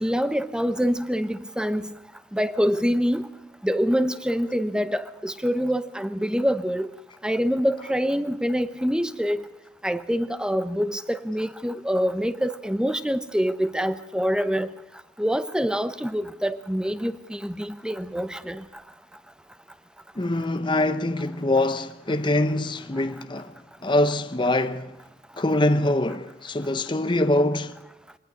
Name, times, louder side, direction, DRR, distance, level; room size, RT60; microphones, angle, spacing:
voice 1, 0.0-1.9 2.3-3.3 3.6-6.9 7.2-9.4 9.8-14.7 15.2-18.6, equal, 5° right, 0.9 m, -25 dB
voice 2, 20.2-23.5 23.8-25.0 25.4-27.8, left 1 dB, 25° left, 0.7 m, -24 dB
24.5 x 19.0 x 6.6 m
head